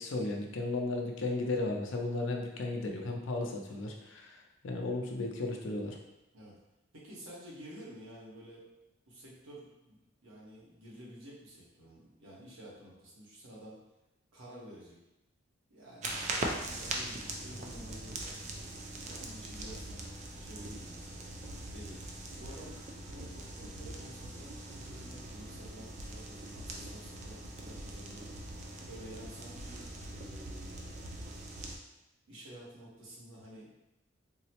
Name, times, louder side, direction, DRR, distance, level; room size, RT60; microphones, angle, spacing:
voice 1, 0.0-6.0, left 2 dB, 70° left, 2 dB, 0.5 m, -35 dB
voice 2, 6.9-8.6 9.1-13.8 14.3-15.0 15.7-18.4 19.1-20.0 20.4-21.3 21.7-22.0 22.4-22.8 23.1-28.3 28.9-30.9 32.3-33.7, equal, 85° right, -6 dB, 1.0 m, -51 dB
sound 1, 16.0-31.8, right 2 dB, 35° right, 0.3 m, -41 dB
3.8 x 2.0 x 2.8 m, 0.95 s
head